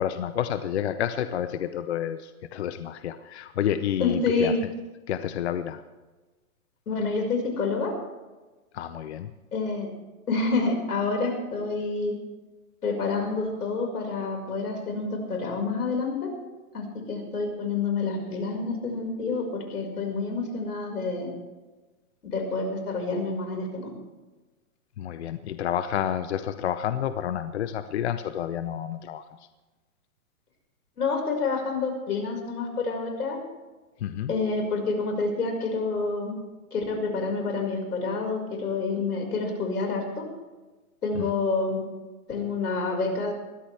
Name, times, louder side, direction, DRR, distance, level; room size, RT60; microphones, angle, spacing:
voice 1, 0.0-4.7 5.1-5.8 8.7-9.3 25.0-29.2 34.0-34.3 41.1-41.3, left 10 dB, 50° left, 11 dB, 0.8 m, -29 dB
voice 2, 4.0-4.6 6.9-7.9 9.5-9.9 10.3-12.2 12.8-16.3 16.7-21.3 22.2-24.0 31.0-33.4 34.3-36.4 36.7-40.3 41.0-41.8 42.3-43.3, left 4 dB, 90° left, 3 dB, 5.5 m, -28 dB
20.5 x 15.0 x 3.4 m, 1.2 s
hypercardioid pair, 160°, 44 cm